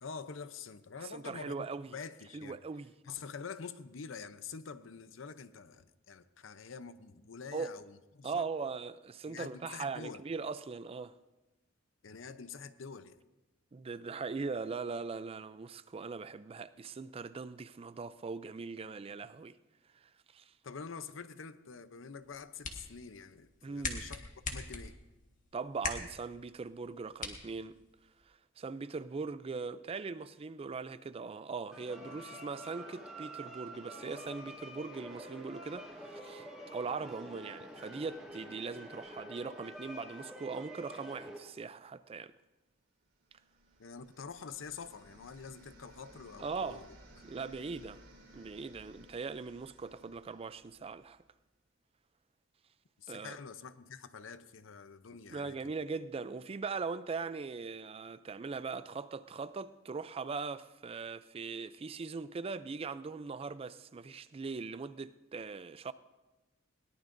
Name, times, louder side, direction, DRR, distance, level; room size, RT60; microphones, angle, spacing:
voice 1, 0.0-2.6 3.0-8.5 9.3-10.2 12.0-13.2 20.6-24.9 43.8-46.8 53.0-55.7, left 5 dB, 75° left, 0.7 m, -46 dB
voice 2, 1.1-2.0 2.3-2.9 7.5-7.7 8.2-11.1 13.7-19.6 20.0-20.5 23.6-24.1 25.5-27.8 28.3-36.5 36.7-42.3 46.4-46.9 47.2-48.0 48.3-51.2 53.1-53.4 55.3-65.9, right 4 dB, 30° right, 0.4 m, -40 dB
sound 1, 22.2-28.2, left 4 dB, 40° left, 1.6 m, -43 dB
sound 2, 31.7-41.4, right 1 dB, ahead, 2.3 m, -48 dB
sound 3, 43.2-51.2, right 1 dB, 85° right, 4.4 m, -58 dB
21.0 x 18.0 x 2.6 m
head